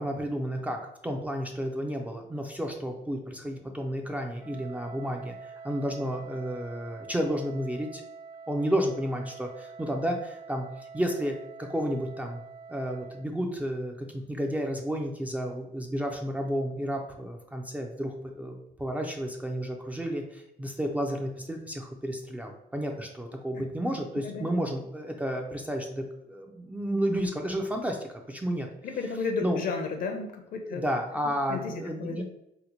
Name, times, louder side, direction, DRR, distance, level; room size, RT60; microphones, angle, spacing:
voice 1, 0.0-8.0 8.5-12.4 12.7-28.7 29.4-29.6 30.6-32.2, equal, 10° right, 2 dB, 0.4 m, -32 dB
Wind instrument woodwind instrument, 4.4-13.3, right 5 dB, 60° right, 0.9 m, -46 dB
voice 2, 28.8-30.8 31.5-32.2, left 4 dB, 55° left, 4 dB, 0.6 m, -33 dB
2.9 x 2.1 x 4.1 m, 0.83 s
cardioid pair, 110°, 17 cm